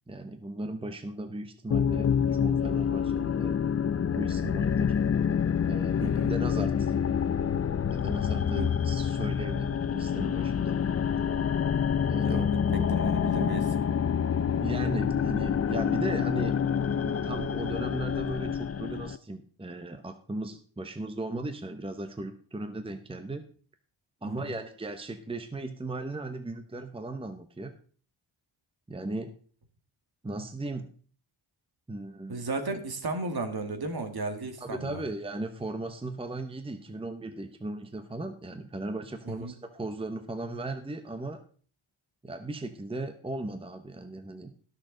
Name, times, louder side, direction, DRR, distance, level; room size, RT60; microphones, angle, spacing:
voice 1, 0.1-3.6 4.2-5.0 5.7-6.9 7.9-10.8 12.1-12.5 14.6-16.6 17.0-23.4 24.2-27.8 28.9-29.3 30.2-30.9 31.9-32.4 34.6-41.4 42.2-44.5, right 2 dB, 10° right, 8 dB, 0.9 m, -37 dB
sound 1, 1.7-19.2, left 7 dB, 35° left, 0.4 m, -27 dB
voice 2, 6.0-6.3 8.6-8.7 12.2-13.8 24.2-24.6 32.3-35.0 39.3-39.5, right 3 dB, 50° right, 7 dB, 2.0 m, -35 dB
18.5 x 6.6 x 3.9 m, 0.43 s
wide cardioid pair, 105°, 48 cm